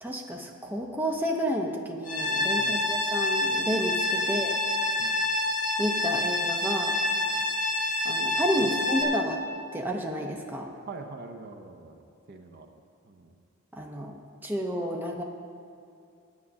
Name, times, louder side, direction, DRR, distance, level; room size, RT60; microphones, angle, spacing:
voice 1, 0.0-4.5 5.8-7.0 8.0-9.4 9.7-10.7 13.7-15.2, equal, 10° right, 1 dB, 0.7 m, -31 dB
sound 1, 2.0-9.0, left 2 dB, 35° left, 1.8 m, -27 dB
voice 2, 2.6-2.9 4.2-4.4 5.0-5.2 7.4-7.5 8.6-8.9 10.9-12.7 13.1-13.3, right 3 dB, 45° right, 5 dB, 0.7 m, -44 dB
9.6 x 8.3 x 6.2 m, 2.6 s
head